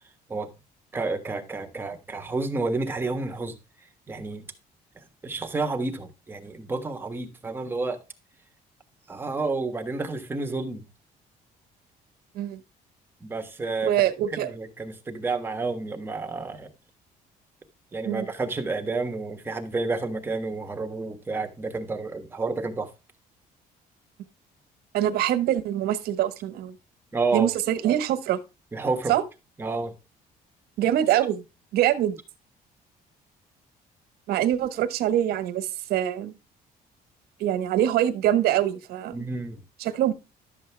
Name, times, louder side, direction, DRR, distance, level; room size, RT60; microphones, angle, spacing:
voice 1, 0.9-3.5 4.1-4.5 5.0-8.0 9.1-10.8 13.2-13.9 14.3-16.7 17.9-22.9 27.1-27.5 28.7-29.2 29.6-29.9 39.1-39.6, right 3 dB, 15° right, 1.3 m, -30 dB
voice 2, 13.8-14.5 18.0-18.3 24.9-26.8 27.3-28.4 29.1-29.2 30.8-31.4 31.7-32.2 34.3-36.3 37.4-39.3 39.8-40.1, right 12 dB, 90° right, 1.4 m, -24 dB
12.0 x 7.5 x 3.3 m
cardioid pair, 180°, 16 cm